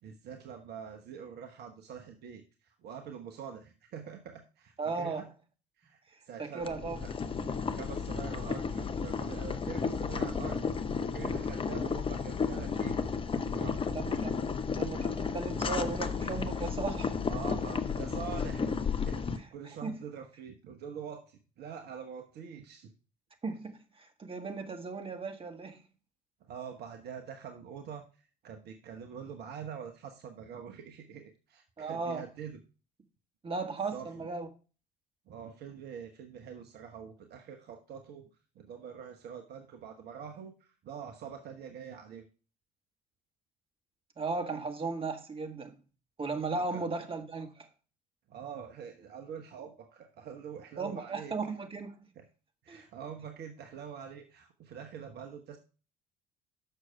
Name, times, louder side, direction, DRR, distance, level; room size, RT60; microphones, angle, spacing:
voice 1, 0.0-5.3 5.8-7.1 7.6-10.6 11.0-13.0 13.3-13.8 17.3-22.9 26.5-32.6 33.9-34.3 35.3-38.3 38.5-42.2 46.5-46.8 48.3-51.3 52.2-52.3 52.6-55.6, right 7 dB, 50° right, 1.0 m, -45 dB
voice 2, 4.8-5.2 6.4-7.0 13.9-14.4 14.7-17.2 19.4-19.5 19.8-19.9 23.4-25.8 31.8-32.2 33.4-34.5 44.2-45.7 46.2-47.7 50.8-51.9 52.7-52.8, right 4 dB, 25° right, 1.6 m, -36 dB
Boiling, 6.6-19.4, left 5 dB, 25° left, 0.8 m, -33 dB
6.8 x 6.3 x 4.8 m
figure-of-eight pair, 55°, 21 cm